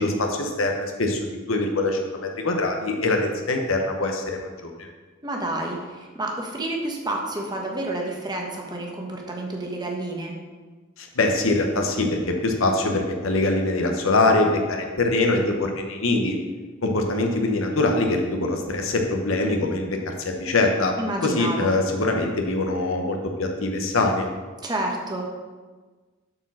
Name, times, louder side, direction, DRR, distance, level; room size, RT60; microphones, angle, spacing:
voice 1, 0.0-4.9 11.0-16.3 16.8-20.9 21.2-24.3, left 2 dB, 80° left, 3 dB, 1.1 m, -23 dB
voice 2, 5.2-10.3 21.0-21.7 24.6-25.3, right 1 dB, 20° right, 0 dB, 1.3 m, -29 dB
7.6 x 4.8 x 6.3 m, 1.4 s
head